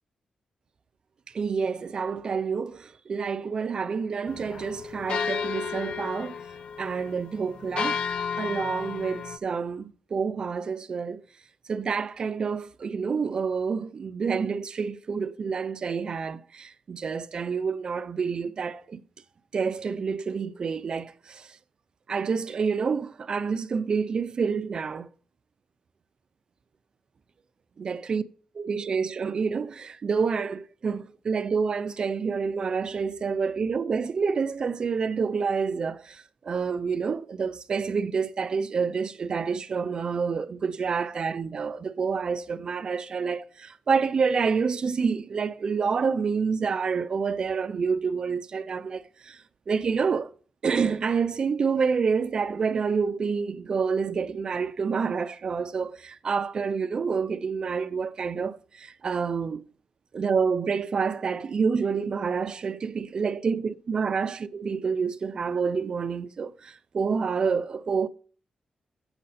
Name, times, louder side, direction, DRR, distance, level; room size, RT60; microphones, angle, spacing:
voice 1, 1.3-6.3 6.8-8.0 8.4-11.2 11.7-19.0 19.5-21.5 22.1-25.1 27.8-28.2 28.6-49.4 49.7-50.3 50.6-59.6 60.1-68.1, right 5 dB, 40° right, 0.4 m, -28 dB
sound 1, 4.3-9.4, left 6 dB, 45° left, 0.4 m, -33 dB
8.8 x 6.4 x 4.1 m
wide cardioid pair, 180°, 2 cm